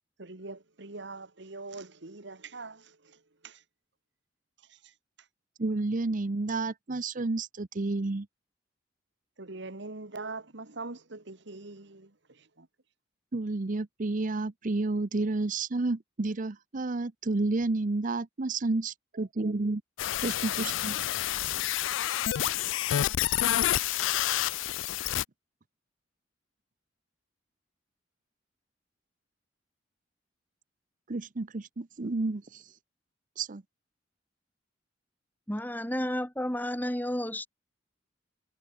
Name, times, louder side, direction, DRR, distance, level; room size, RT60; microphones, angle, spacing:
voice 1, 0.2-3.6 4.7-4.9 9.4-12.7, right 3 dB, 70° right, 1.9 m, -43 dB
voice 2, 5.6-8.3 13.3-19.8 20.2-20.9 31.1-32.6 33.4-33.6, right 3 dB, 45° right, 0.7 m, -30 dB
sound 1, 20.0-25.2, left 13 dB, 85° left, 0.4 m, -28 dB
voice 3, 35.5-37.5, left 1 dB, 10° left, 2.4 m, -31 dB
head